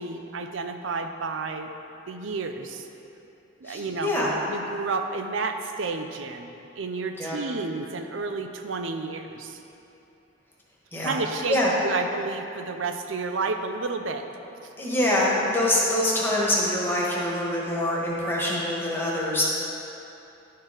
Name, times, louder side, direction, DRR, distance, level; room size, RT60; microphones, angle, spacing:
voice 1, 0.0-1.7 2.1-2.9 3.6-4.1 4.5-9.6 11.0-14.3, right 4 dB, 80° right, 6 dB, 0.6 m, -31 dB
voice 2, 3.6-4.3 7.2-7.4 10.9-11.2 11.5-11.7 14.8-19.4, left 1 dB, 10° left, -5 dB, 1.3 m, -25 dB
11.0 x 4.6 x 4.9 m, 2.9 s
head